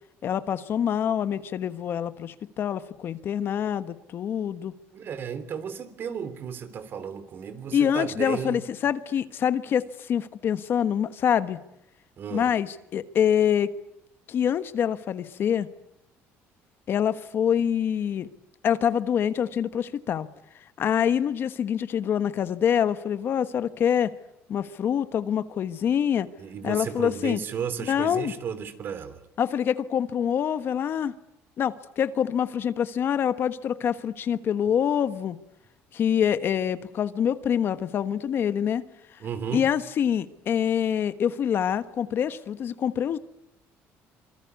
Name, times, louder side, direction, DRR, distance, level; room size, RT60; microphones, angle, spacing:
voice 1, 0.2-4.7 7.7-11.6 12.3-13.7 14.3-15.7 16.9-18.3 18.6-20.3 20.8-24.1 24.5-26.3 26.6-27.4 27.9-28.3 29.4-31.1 31.6-35.4 35.9-38.8 39.5-43.2, left 8 dB, 45° left, 1.3 m, -25 dB
voice 2, 4.9-8.6 12.2-12.5 26.4-29.2 39.2-39.7, right 7 dB, 45° right, 3.4 m, -34 dB
26.5 x 25.0 x 8.4 m
cardioid pair, 135°, 5 cm